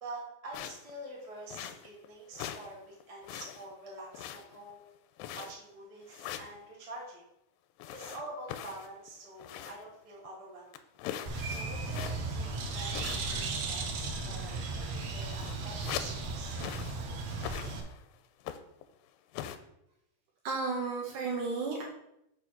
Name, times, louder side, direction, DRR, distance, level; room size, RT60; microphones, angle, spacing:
voice 1, 0.0-4.8 5.3-7.2 7.9-10.7 11.5-16.6, right 2 dB, 45° right, -3 dB, 0.4 m, -46 dB
sound 1, 0.5-0.9 1.5-2.1 2.3-2.7 3.0-3.7 4.1-4.7 5.2-5.7 6.1-6.6 7.8-9.9 10.3-10.4 10.7-12.4 12.9-13.5 13.7-14.0 14.7-14.8 15.0-16.2 16.6-17.0 17.3-18.0 18.4-18.8 19.3-19.6, left 10 dB, 85° left, 2.7 m, -42 dB
Bird, 11.3-17.8, right 3 dB, 90° right, 1.6 m, -36 dB
voice 2, 20.4-21.8, right 4 dB, 65° right, -1 dB, 2.2 m, -33 dB
6.8 x 4.5 x 5.8 m, 0.81 s
omnidirectional pair, 4.9 m